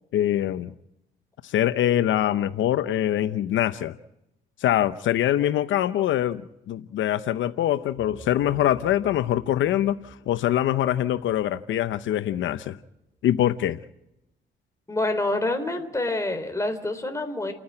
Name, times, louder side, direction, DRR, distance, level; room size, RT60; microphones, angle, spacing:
voice 1, 0.1-0.7 1.4-4.0 4.6-12.8 13.2-13.8, left 12 dB, 75° left, 12 dB, 0.8 m, -24 dB
sound 1, 7.8-12.6, right 1 dB, 20° right, 5.9 m, -47 dB
voice 2, 14.9-17.5, left 2 dB, 15° left, 6 dB, 3.9 m, -27 dB
30.0 x 10.0 x 8.8 m, 0.85 s
cardioid pair, 90°, 20 cm